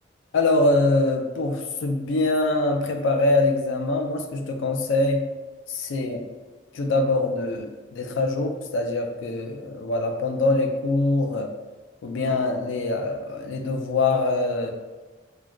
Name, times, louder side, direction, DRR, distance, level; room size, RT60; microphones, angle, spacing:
voice 1, 0.3-5.3 5.7-6.2 6.7-11.5 12.0-14.7, left 2 dB, 85° left, 3 dB, 0.4 m, -24 dB
2.3 x 2.2 x 3.7 m, 1.3 s
head